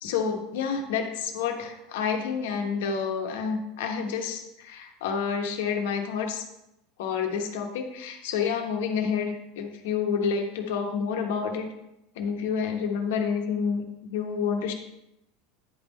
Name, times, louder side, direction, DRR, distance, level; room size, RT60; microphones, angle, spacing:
voice 1, 0.0-6.4 7.0-11.7 12.2-13.8 14.1-14.7, left 6 dB, 80° left, 4 dB, 1.1 m, -29 dB
9.8 x 3.6 x 4.2 m, 0.88 s
supercardioid pair, 135°, 0 cm